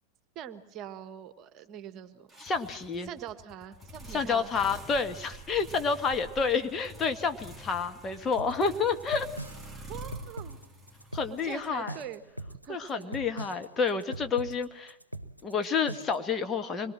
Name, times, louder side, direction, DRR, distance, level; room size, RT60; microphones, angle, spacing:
voice 1, 0.3-2.3 3.0-4.5 9.9-10.6 11.4-12.2 12.6-13.2, right 10 dB, 35° right, 11 dB, 1.5 m, -43 dB
sound 1, 2.3-12.1, right 1 dB, ahead, 2.9 m, -47 dB
voice 2, 2.4-3.1 4.1-9.3 11.1-11.9 12.7-14.9 15.4-16.9, left 5 dB, 20° left, 7 dB, 1.5 m, -29 dB
sound 2, 8.4-16.3, right 1 dB, 90° right, 0.8 m, -41 dB
25.5 x 22.0 x 7.6 m, 0.85 s
figure-of-eight pair, 90°, 0 cm